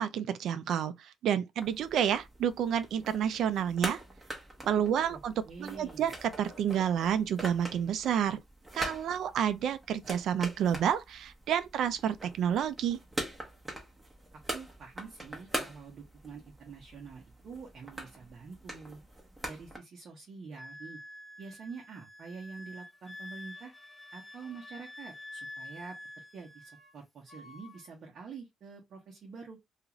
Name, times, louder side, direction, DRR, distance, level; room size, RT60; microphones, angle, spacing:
voice 1, 0.0-4.0 4.7-5.3 5.6-8.4 8.7-13.0, right 9 dB, 75° right, 0.3 m, -29 dB
sound 1, 1.6-19.8, right 1 dB, 15° right, 0.9 m, -43 dB
voice 2, 4.8-6.1 14.5-19.0 19.4-21.0 21.4-23.7 24.1-26.0 26.3-29.6, right 5 dB, 60° right, 0.9 m, -46 dB
Wind instrument woodwind instrument, 20.6-27.0 27.3-27.9, left 1 dB, 10° left, 0.6 m, -48 dB
2.4 x 2.4 x 2.9 m
cardioid pair, 100°, 0 cm